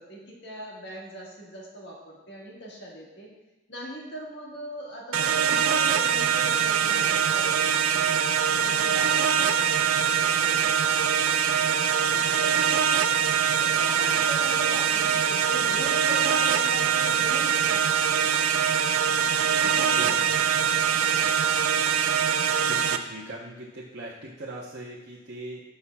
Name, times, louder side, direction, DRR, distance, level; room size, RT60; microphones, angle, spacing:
voice 1, 0.0-3.3 3.7-8.2 8.5-13.0 13.6-18.5 19.6-20.1, equal, 55° left, -3 dB, 1.5 m, -40 dB
sound 1, 5.1-23.0, right 8 dB, 80° right, 0.4 m, -23 dB
sound 2, 9.0-22.3, left 1 dB, 20° left, 1.3 m, -48 dB
voice 2, 20.0-20.3 22.7-25.6, right 1 dB, 50° right, -5 dB, 0.8 m, -39 dB
14.0 x 5.6 x 2.3 m, 1.1 s
head